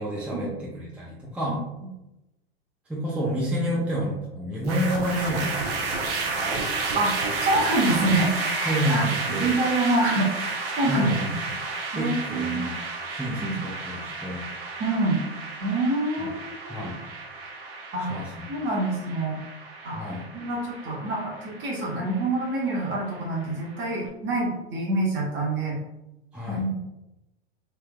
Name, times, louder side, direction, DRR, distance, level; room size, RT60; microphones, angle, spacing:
voice 1, 0.0-1.6 2.9-6.4 8.6-9.6 10.9-11.3 11.6-11.7 11.9-12.8 13.1-14.5 16.2-16.3 16.7-17.0 18.0-18.3 19.9-20.3 26.3-26.7, equal, 5° right, -5 dB, 0.6 m, -29 dB
sound 1, 4.6-23.9, right 3 dB, 65° right, 0.8 m, -32 dB
voice 2, 7.4-11.4 11.9-12.7 13.3-13.6 14.8-15.2 15.6-16.9 17.9-18.2 18.5-19.4 19.8-20.0 20.3-25.8 26.5-26.8, right 2 dB, 35° right, -2 dB, 1.1 m, -26 dB
3.4 x 2.7 x 2.3 m, 0.92 s
hypercardioid pair, 100°, 31 cm